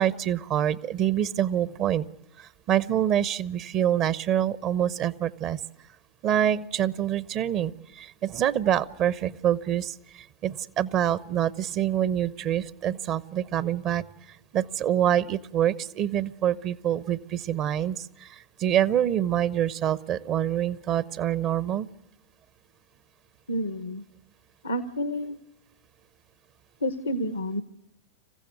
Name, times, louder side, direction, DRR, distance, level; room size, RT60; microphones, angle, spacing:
voice 1, 0.0-2.1 2.4-5.6 6.2-21.9, right 10 dB, 35° right, 19 dB, 0.8 m, -26 dB
voice 2, 23.5-24.0 24.6-25.4 26.8-27.6, equal, 75° left, 12 dB, 1.0 m, -29 dB
27.5 x 15.5 x 9.4 m, 0.84 s
figure-of-eight pair, 90°, 0 cm